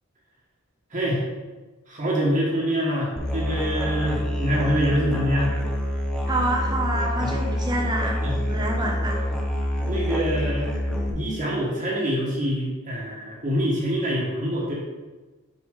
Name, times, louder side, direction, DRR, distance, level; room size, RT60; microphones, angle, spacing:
voice 1, 0.9-1.2 1.9-5.6 7.2-7.3 8.2-8.3 8.8-8.9 9.8-10.7 11.1-14.7, equal, 35° right, -5 dB, 1.2 m, -25 dB
Musical instrument, 3.2-11.1, equal, 5° left, 0.6 m, -27 dB
voice 2, 6.3-9.3, right 1 dB, 20° right, 0 dB, 0.9 m, -28 dB
6.4 x 4.7 x 3.6 m, 1.2 s
head